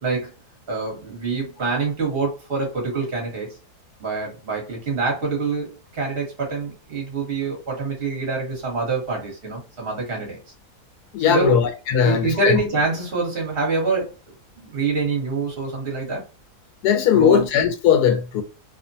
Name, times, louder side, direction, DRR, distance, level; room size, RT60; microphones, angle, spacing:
voice 1, 0.7-3.5 4.0-10.4 11.2-11.6 12.0-14.1 14.6-16.2 17.1-17.5, right 4 dB, 40° right, 1.2 m, -25 dB
voice 2, 11.1-12.6 16.8-18.4, left 8 dB, 80° left, 1.1 m, -18 dB
2.9 x 2.1 x 2.6 m
omnidirectional pair, 1.7 m